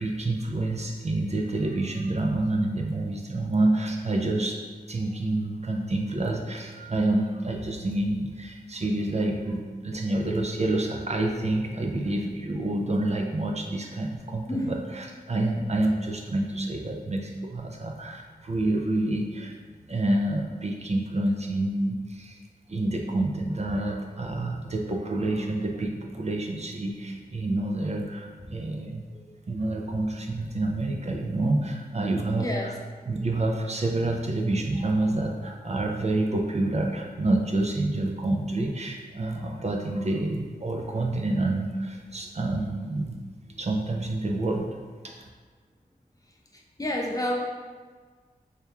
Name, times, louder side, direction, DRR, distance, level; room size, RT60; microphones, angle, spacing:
voice 1, 0.0-4.6 4.9-19.5 19.9-22.4 22.7-29.0 29.5-32.7 33.1-43.2 43.6-45.2, right 2 dB, 45° right, 1 dB, 0.4 m, -28 dB
voice 2, 46.8-47.3, left 1 dB, 20° left, -1 dB, 0.6 m, -29 dB
3.4 x 2.9 x 3.5 m, 1.5 s
wide cardioid pair, 55°, 16 cm